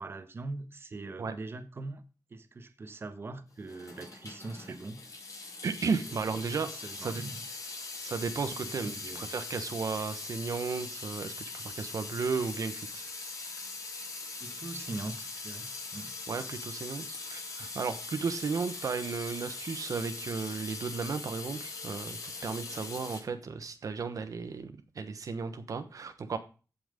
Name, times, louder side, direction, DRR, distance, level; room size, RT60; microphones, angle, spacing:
voice 1, 0.0-2.0 2.3-5.0 6.0-6.1 6.4-7.4 8.8-9.3 14.4-16.1, right 2 dB, 40° right, 1.3 m, -42 dB
Water tap faucet / Sink (filling or washing) / Drip, 3.6-23.2, left 3 dB, 60° left, 5.3 m, -41 dB
voice 2, 5.6-7.2 8.0-13.1 16.3-26.4, right 5 dB, 65° right, 1.1 m, -34 dB
15.5 x 6.0 x 5.1 m
wide cardioid pair, 175°, 6 cm